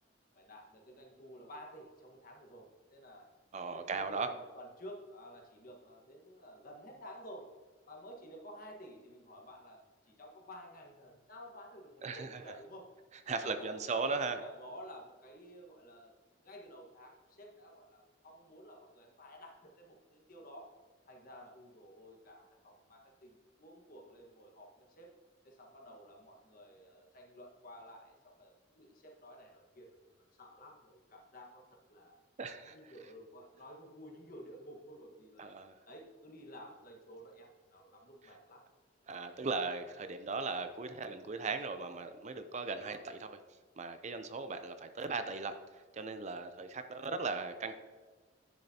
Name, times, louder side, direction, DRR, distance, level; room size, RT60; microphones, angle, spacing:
voice 1, 0.3-3.3 3.7-7.5 7.9-9.8 10.1-12.9 13.3-16.1 16.4-20.7 21.1-24.7 25.0-25.1 25.4-29.9 30.1-31.6 31.9-32.2 32.6-35.6 35.9-38.6 42.7-43.0, equal, 50° left, 0 dB, 1.5 m, -52 dB
voice 2, 3.5-4.3 12.0-12.4 13.3-14.4 32.4-32.8 35.4-35.7 39.1-43.4 43.8-45.5 45.9-47.7, right 4 dB, 40° right, 9 dB, 0.5 m, -37 dB
10.0 x 7.2 x 2.8 m, 1.4 s
head